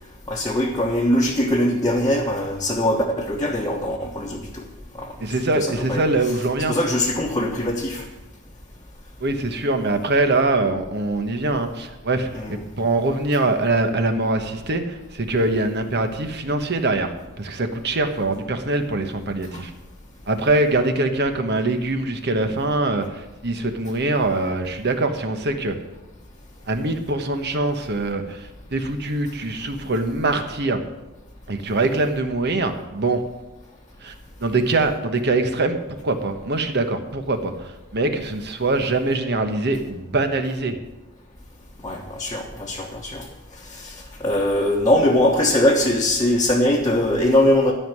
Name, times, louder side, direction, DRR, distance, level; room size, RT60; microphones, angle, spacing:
voice 1, 0.3-4.7 5.0-5.1 5.5-6.4 6.7-8.0 12.3-12.5 19.5-19.6 41.8-43.3 43.7-47.7, left 1 dB, 15° left, -3 dB, 1.2 m, -21 dB
voice 2, 5.2-6.8 9.2-19.7 20.3-25.8 26.7-30.8 31.5-33.2 34.0-34.1 34.4-40.8, right 2 dB, 50° right, 7 dB, 1.2 m, -23 dB
13.0 x 5.6 x 9.2 m, 1.0 s
head